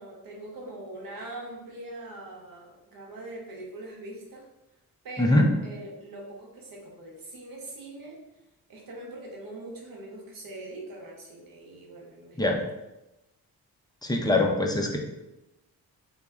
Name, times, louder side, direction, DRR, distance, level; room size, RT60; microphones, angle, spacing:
voice 1, 0.0-4.5 5.0-8.2 8.7-12.6, right 2 dB, 60° right, -1 dB, 0.8 m, -42 dB
voice 2, 5.2-5.5 12.4-12.6 14.0-15.0, left 1 dB, 10° left, 1 dB, 0.3 m, -22 dB
3.1 x 2.0 x 2.3 m, 0.96 s
cardioid pair, 70°, 38 cm